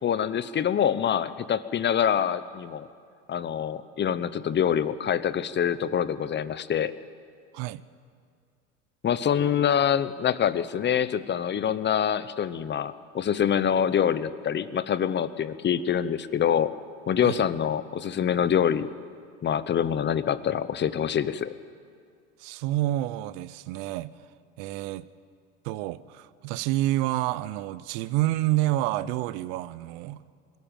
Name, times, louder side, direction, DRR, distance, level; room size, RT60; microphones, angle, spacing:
voice 1, 0.0-2.9 3.3-6.9 9.0-16.7 17.1-18.9 19.4-21.5, left 8 dB, 35° left, 15 dB, 0.9 m, -25 dB
voice 2, 22.4-24.1 24.6-25.1 25.6-30.2, right 16 dB, 70° right, 17 dB, 0.8 m, -28 dB
21.5 x 13.5 x 9.1 m, 2.2 s
hypercardioid pair, 85°, 33 cm